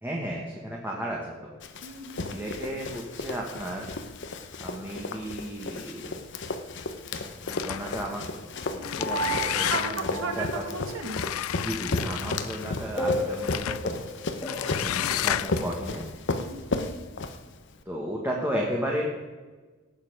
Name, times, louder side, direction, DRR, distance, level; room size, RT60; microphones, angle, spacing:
voice 1, 0.0-1.5 2.2-3.9 4.6-6.2 7.4-8.4 8.7-10.6 11.6-14.0 14.8-16.0 17.9-19.0, equal, 10° right, -2 dB, 1.4 m, -34 dB
Run, 1.6-17.8, left 3 dB, 55° left, 0.9 m, -34 dB
voice 2, 1.8-2.4 8.8-11.2 16.3-16.7, right 3 dB, 70° right, 4 dB, 1.8 m, -36 dB
sound 1, 7.5-8.1 8.7-10.2 11.0-12.7 13.4-13.9 14.4-15.7, left 12 dB, 80° left, 0.4 m, -31 dB
sound 2, 9.0-10.8 13.0-15.7, equal, 20° left, 1.7 m, -33 dB
18.0 x 6.8 x 5.1 m, 1.3 s
head